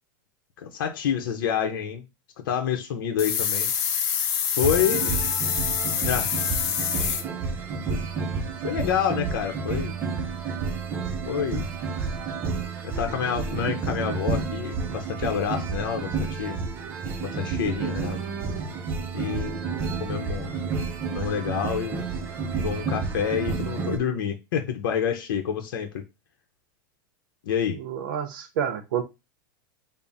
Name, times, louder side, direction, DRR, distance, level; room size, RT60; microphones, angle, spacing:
voice 1, 0.6-2.0 2.4-3.7 4.5-5.2 6.0-6.3 7.9-8.0 8.6-10.0 11.3-11.6 13.0-16.6 17.2-18.2 19.1-19.6 20.0-20.5 21.1-22.1 22.6-26.0 27.5-27.8, left 8 dB, 85° left, 0.7 m, -28 dB
sound 1, 3.2-7.2, left 8 dB, 50° left, 0.6 m, -26 dB
sound 2, 4.6-24.0, right 4 dB, 20° right, 0.5 m, -30 dB
voice 2, 27.8-29.0, right 8 dB, 75° right, 0.6 m, -29 dB
3.5 x 2.0 x 4.0 m
supercardioid pair, 165°, 11 cm